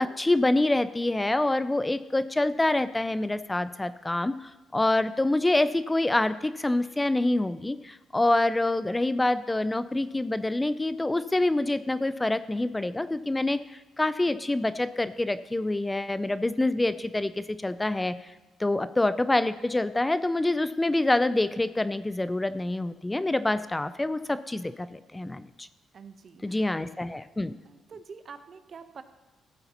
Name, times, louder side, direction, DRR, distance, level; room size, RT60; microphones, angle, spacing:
voice 1, 0.0-13.6 14.0-18.3 18.6-25.7 26.4-27.5, left 2 dB, 15° left, 13 dB, 0.3 m, -26 dB
voice 2, 25.9-26.7 27.6-29.0, right 5 dB, 50° right, 10 dB, 0.7 m, -46 dB
14.0 x 8.0 x 2.9 m, 1.2 s
cardioid pair, 90°, 0 cm